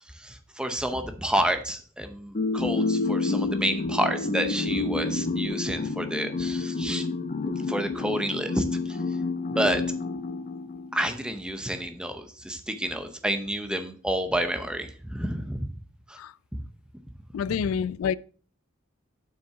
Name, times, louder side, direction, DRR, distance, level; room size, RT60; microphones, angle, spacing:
voice 1, 0.2-7.1 7.7-9.0 9.5-9.8 10.9-15.7 16.1-16.2 16.5-16.6 17.5-17.7, right 1 dB, 5° right, 0.8 m, -29 dB
sound 1, 2.3-11.1, left 3 dB, 35° left, 0.6 m, -29 dB
voice 2, 17.3-18.2, left 7 dB, 80° left, 0.3 m, -27 dB
7.4 x 6.1 x 3.6 m
head